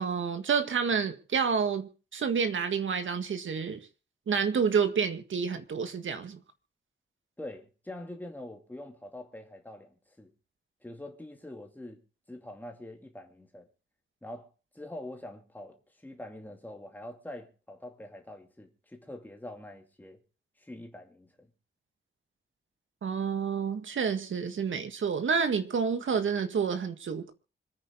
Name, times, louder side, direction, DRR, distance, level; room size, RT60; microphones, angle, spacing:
voice 1, 0.0-3.8 4.3-6.4 23.0-27.3, right 6 dB, 80° right, 1.9 m, -29 dB
voice 2, 7.4-10.3 10.8-12.0 12.3-13.7 14.2-20.2 20.6-21.3, left 1 dB, 10° left, 2.5 m, -44 dB
26.0 x 9.5 x 3.8 m
wide cardioid pair, 175°, 20 cm